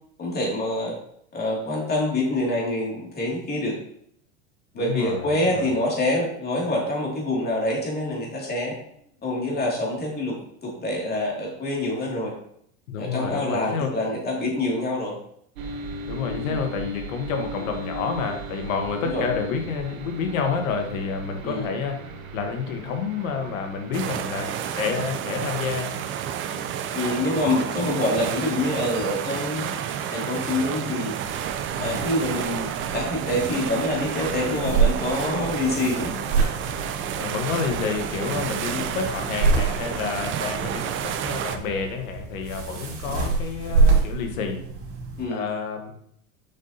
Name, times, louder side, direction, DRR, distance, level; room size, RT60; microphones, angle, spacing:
voice 1, 0.2-0.9 1.3-3.8 4.7-8.8 9.2-10.4 10.6-12.3 13.0-15.2 16.4-16.6 19.0-19.2 21.4-21.7 26.9-29.7 30.1-31.1 31.8-36.1 38.7-38.9 43.1-43.2 45.2-45.4, left 1 dB, 25° left, -2 dB, 2.6 m, -26 dB
voice 2, 4.7-5.7 12.9-13.9 16.1-22.0 22.3-25.9 31.8-32.0 37.2-44.6 45.3-45.9, left 5 dB, 85° left, 4 dB, 1.4 m, -29 dB
sound 1, 15.6-24.0, right 1 dB, 85° right, 1.2 m, -37 dB
sound 2, 23.9-41.6, right 9 dB, 30° right, 0.5 m, -30 dB
sound 3, 31.6-45.2, right 4 dB, 60° right, 2.3 m, -27 dB
7.3 x 5.4 x 2.9 m, 0.69 s
supercardioid pair, 125°, 40 cm